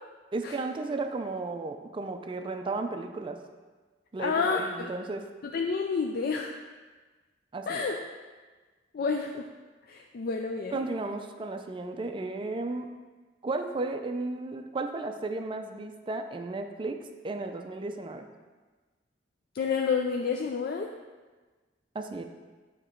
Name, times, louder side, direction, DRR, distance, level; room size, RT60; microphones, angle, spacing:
voice 1, 0.3-3.4 4.1-5.2 7.5-7.9 10.7-12.9 13.4-17.0 17.2-18.3 21.9-22.2, right 3 dB, 30° right, 6 dB, 0.4 m, -34 dB
voice 2, 4.2-4.9 5.5-6.5 7.7-8.0 8.9-9.4 9.9-10.8 19.5-20.9, left 5 dB, 55° left, 2 dB, 0.4 m, -29 dB
8.4 x 3.0 x 4.4 m, 1.3 s
head